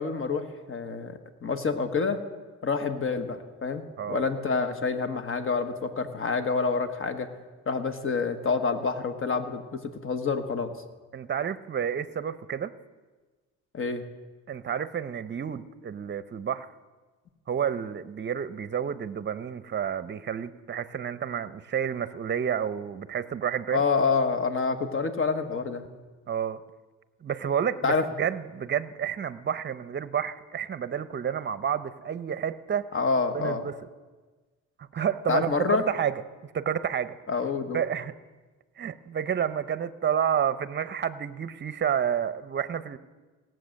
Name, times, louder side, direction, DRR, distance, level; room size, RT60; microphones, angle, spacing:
voice 1, 0.0-2.2 2.6-3.8 4.1-7.3 7.7-10.7 13.7-14.0 23.7-25.9 27.8-28.1 32.9-33.6 35.3-35.9 37.3-37.8, left 4 dB, 45° left, 9 dB, 1.3 m, -27 dB
voice 2, 11.1-12.7 14.5-16.7 17.5-23.8 26.3-26.6 27.2-32.9 33.3-33.7 34.8-37.2 37.7-38.1 38.8-43.0, right 8 dB, 35° right, 14 dB, 0.7 m, -30 dB
18.0 x 7.7 x 6.5 m, 1.3 s
cardioid pair, 90°, 30 cm